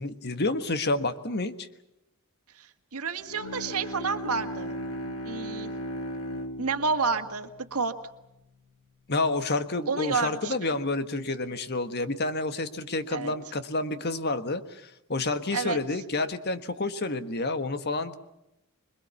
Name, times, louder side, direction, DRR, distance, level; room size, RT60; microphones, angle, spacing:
voice 1, 0.0-1.7 9.1-18.2, left 2 dB, 50° left, 10 dB, 1.5 m, -29 dB
voice 2, 2.6-4.7 5.3-5.7 6.6-7.9 9.9-10.8 13.1-13.3 15.5-15.8, right 5 dB, 80° right, 5 dB, 1.8 m, -30 dB
Bowed string instrument, 3.2-8.6, equal, 70° left, 2.1 m, -37 dB
26.0 x 22.0 x 7.1 m, 0.89 s
head